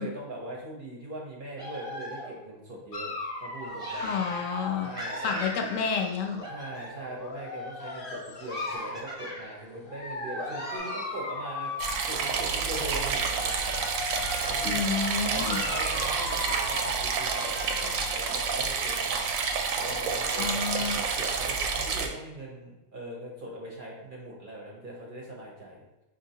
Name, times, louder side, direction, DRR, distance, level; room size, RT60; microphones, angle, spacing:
voice 1, 0.0-3.1 3.4-4.2 4.8-5.3 6.5-11.7 12.0-13.5 14.4-25.9, right 1 dB, 50° right, -2 dB, 0.7 m, -40 dB
sound 1, 1.6-2.5 3.8-4.6 4.9-6.1 6.4-7.2 8.4-9.7 10.3-10.8, equal, 5° right, 0.8 m, -40 dB
Dog, 2.9-6.3 7.1-9.1 9.9-12.5 13.2-18.1, left 2 dB, 55° left, 0.7 m, -37 dB
voice 2, 4.0-4.9 5.2-6.5 14.6-15.6 20.4-21.0, left 6 dB, 80° left, 4 dB, 1.0 m, -30 dB
sound 2, 11.8-22.1, right 5 dB, 90° right, 1.0 m, -29 dB
5.2 x 2.7 x 2.7 m, 1.0 s
omnidirectional pair, 1.4 m